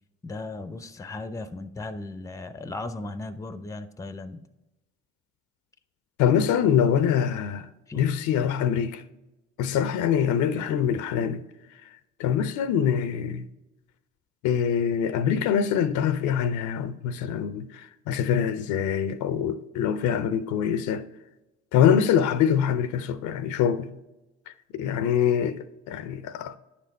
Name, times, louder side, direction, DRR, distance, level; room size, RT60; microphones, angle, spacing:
voice 1, 0.2-4.4 7.9-8.0 10.9-11.0, left 2 dB, 10° left, 0.5 m, -36 dB
voice 2, 6.2-7.7 7.9-9.0 9.6-11.4 11.8-11.9 12.2-13.5 14.4-21.0 21.7-23.9 24.5-26.6, left 8 dB, 60° left, 0.6 m, -24 dB
9.8 x 4.3 x 4.1 m
hypercardioid pair, 60°, 34 cm